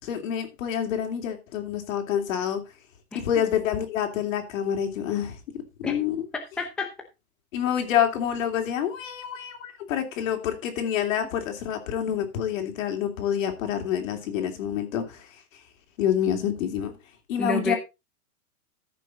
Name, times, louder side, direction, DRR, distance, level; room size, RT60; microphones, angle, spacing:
voice 1, 0.0-2.6 3.1-6.2 7.5-15.3 16.0-16.9 17.3-17.8, left 9 dB, 55° left, 3.0 m, -27 dB
voice 2, 6.3-6.9 17.4-17.7, left 2 dB, ahead, 0.7 m, -29 dB
14.5 x 6.0 x 3.9 m
hypercardioid pair, 150°, 46 cm